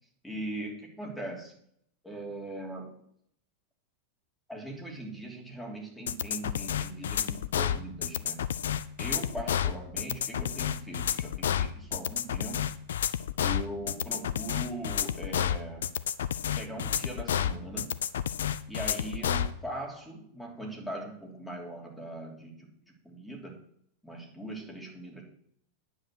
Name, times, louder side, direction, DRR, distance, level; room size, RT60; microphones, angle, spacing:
voice 1, 0.2-1.5 2.0-2.9 4.5-8.4 9.0-12.6 13.4-15.8 16.6-17.9 18.7-22.7 23.0-23.6 24.0-25.2, right 1 dB, ahead, -1 dB, 3.2 m, -40 dB
sound 1, 6.1-19.5, left 9 dB, 60° left, 0.5 m, -30 dB
9.7 x 8.4 x 6.4 m, 0.68 s
figure-of-eight pair, 90°, 0 cm